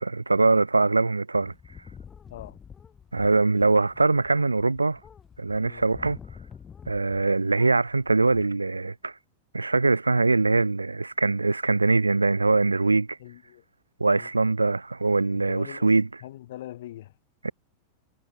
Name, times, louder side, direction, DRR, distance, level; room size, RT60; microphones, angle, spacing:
voice 1, 0.0-1.5 3.1-5.0 5.4-6.2 6.9-9.1 9.5-13.2 14.0-16.1 17.4-17.5, right 3 dB, 80° right, 0.4 m, -22 dB
sound 1, 1.3-7.3 7.5-8.4, left 7 dB, 20° left, 3.5 m, -48 dB
voice 2, 13.2-13.6 14.0-14.3 15.3-15.9 16.2-17.1, left 14 dB, 55° left, 4.1 m, -42 dB
figure-of-eight pair, 90°, 0 cm